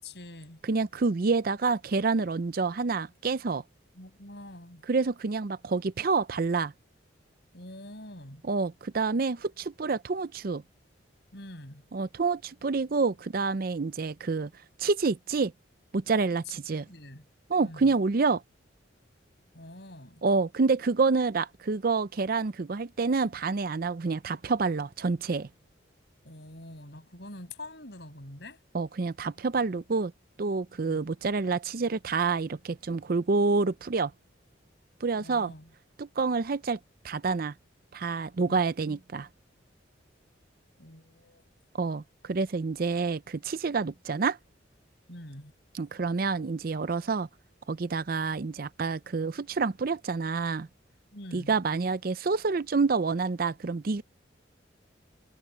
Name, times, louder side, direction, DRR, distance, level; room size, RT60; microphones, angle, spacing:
voice 1, 0.0-0.6 3.9-4.8 7.5-8.4 11.3-11.9 16.5-16.6 16.9-17.3 17.6-17.9 19.5-20.2 26.2-28.6 30.8-31.0 35.2-35.7 38.5-38.6 38.9-39.0 40.8-41.5 45.1-45.5 51.1-51.6, left 1 dB, 60° left, 7.4 m, -45 dB
voice 2, 0.6-3.6 4.9-6.7 8.4-10.6 11.9-14.5 14.8-15.5 15.9-16.9 17.5-18.4 20.2-25.5 28.7-30.1 30.4-34.1 35.0-35.5 36.0-36.8 37.0-37.5 37.9-39.3 41.7-44.4 45.7-47.3 47.7-50.7 51.3-54.0, right 4 dB, 50° right, 0.5 m, -28 dB
head